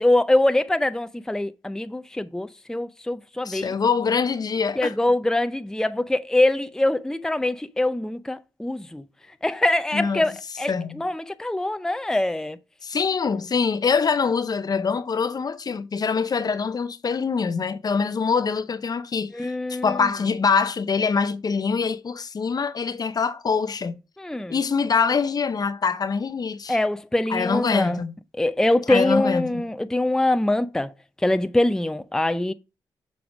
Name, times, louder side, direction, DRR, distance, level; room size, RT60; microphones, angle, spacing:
voice 1, 0.0-3.7 4.8-9.0 9.4-12.6 19.3-20.1 24.2-24.6 26.7-28.0 28.4-30.9 31.2-32.5, left 1 dB, 5° left, 0.5 m, -23 dB
voice 2, 3.4-4.9 9.9-10.3 10.7-11.0 12.8-24.0 24.5-26.8 27.3-28.1 28.9-29.6, left 5 dB, 50° left, 0.7 m, -24 dB
7.1 x 3.5 x 6.1 m
supercardioid pair, 50°, 9 cm